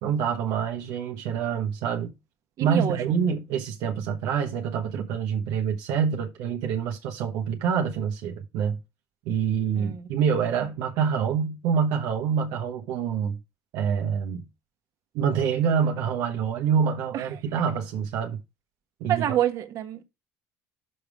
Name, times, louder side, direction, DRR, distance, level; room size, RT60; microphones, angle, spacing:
voice 1, 0.0-2.1 2.6-8.8 9.2-13.4 13.7-14.5 15.1-18.4 19.0-19.4, right 7 dB, 80° right, 1.2 m, -26 dB
voice 2, 2.6-3.1 9.7-10.1 17.1-17.2 19.1-20.1, right 11 dB, 60° right, 1.4 m, -27 dB
6.8 x 5.2 x 4.9 m
cardioid pair, 110°, 6 cm